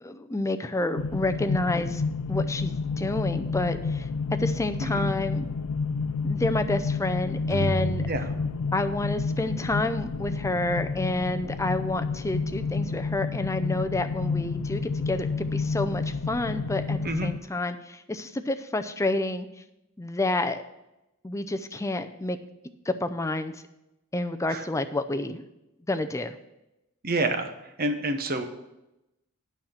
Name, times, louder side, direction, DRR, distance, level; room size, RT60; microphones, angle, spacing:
voice 1, 0.0-2.0 2.3-4.1 4.4-5.5 6.2-8.0 8.7-19.5 20.0-20.6 21.2-22.4 22.9-23.5 24.1-25.4 25.9-26.4, left 2 dB, 15° left, 9 dB, 0.5 m, -29 dB
sound 1, 1.0-17.4, left 4 dB, 75° left, 0.5 m, -30 dB
sound 2, 7.5-9.7, right 3 dB, 80° right, 1.4 m, -33 dB
voice 2, 27.0-28.4, right 2 dB, 45° right, 7 dB, 0.9 m, -28 dB
9.2 x 5.7 x 7.3 m, 0.92 s
head